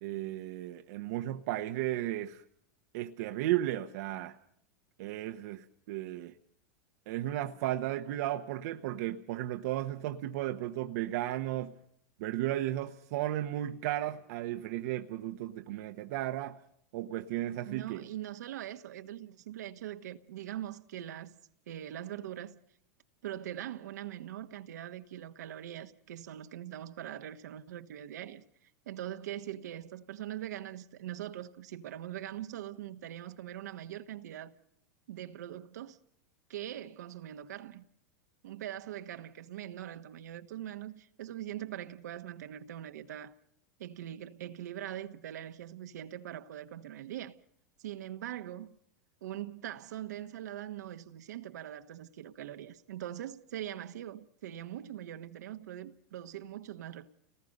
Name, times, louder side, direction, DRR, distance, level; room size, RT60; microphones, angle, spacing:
voice 1, 0.0-2.4 2.9-4.3 5.0-6.3 7.1-11.7 12.2-16.6 16.9-18.1, right 14 dB, 65° right, 1.0 m, -34 dB
voice 2, 17.7-21.4 21.7-22.6 23.2-28.4 28.8-34.5 35.1-36.0 36.5-37.8 38.4-43.3 43.8-47.3 47.8-48.7 49.2-57.1, right 12 dB, 80° right, 1.3 m, -42 dB
29.5 x 19.5 x 5.3 m
hypercardioid pair, 115°, 9 cm